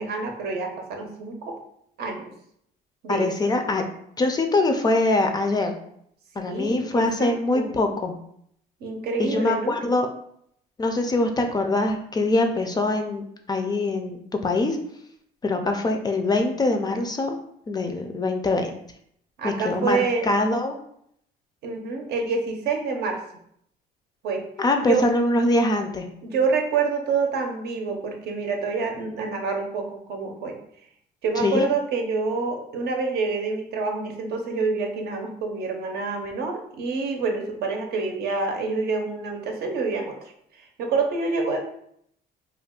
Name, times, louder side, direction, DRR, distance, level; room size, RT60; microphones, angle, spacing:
voice 1, 0.0-1.5 2.0-2.3 3.0-3.3 6.4-7.7 8.8-9.8 19.4-20.3 21.6-23.2 24.2-24.4 24.8-25.1 26.2-30.6 31.2-40.1 40.5-41.6, right 4 dB, 70° right, 3 dB, 0.6 m, -27 dB
voice 2, 3.1-3.8 4.2-5.7 6.4-8.1 9.2-10.1 10.8-14.8 15.4-17.4 17.7-18.7 19.4-20.7 24.6-26.1 31.4-31.7, left 2 dB, 25° left, 5 dB, 0.3 m, -23 dB
2.4 x 2.2 x 3.5 m, 0.70 s
cardioid pair, 110°, 17 cm